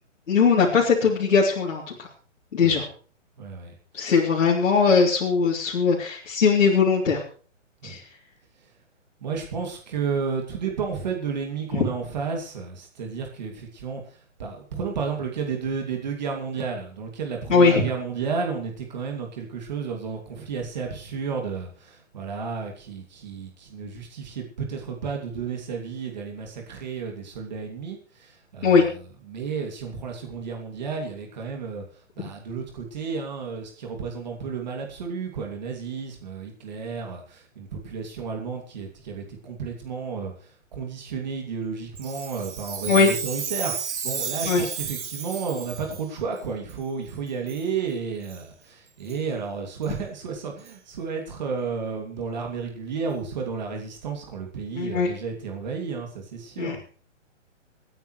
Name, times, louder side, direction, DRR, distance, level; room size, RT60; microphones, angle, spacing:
voice 1, 0.3-2.1 2.5-2.8 3.9-7.2 7.8-8.0 11.7-11.9 17.5-17.9 28.6-28.8 42.9-43.1 44.4-44.6 54.8-55.1 56.6-56.7, left 5 dB, 70° left, -4 dB, 3.3 m, -20 dB
voice 2, 3.4-4.3 7.8-8.0 8.6-8.7 9.2-56.9, right 5 dB, 35° right, 2 dB, 2.5 m, -32 dB
Chime, 42.0-46.0 46.7-46.8 47.5-47.7 48.2-48.4 49.1-49.2 49.8-49.9 50.7-50.8, right 7 dB, 65° right, 1.6 m, -33 dB
27.0 x 9.3 x 3.2 m, 0.43 s
hypercardioid pair, 180°, 38 cm